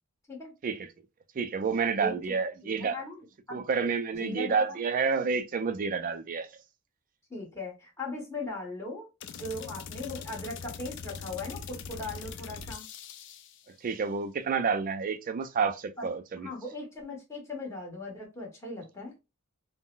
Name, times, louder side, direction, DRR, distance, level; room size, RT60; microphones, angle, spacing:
voice 1, 1.4-3.0 3.5-6.5 13.8-16.5, right 5 dB, 40° right, 0.3 m, -29 dB
voice 2, 2.0-3.6 4.1-4.8 7.3-9.1 9.4-12.8 16.0-16.1 16.4-19.1, left 2 dB, 15° left, 1.1 m, -39 dB
sound 1, 9.2-13.7, left 6 dB, 55° left, 0.4 m, -42 dB
3.7 x 2.0 x 2.4 m
head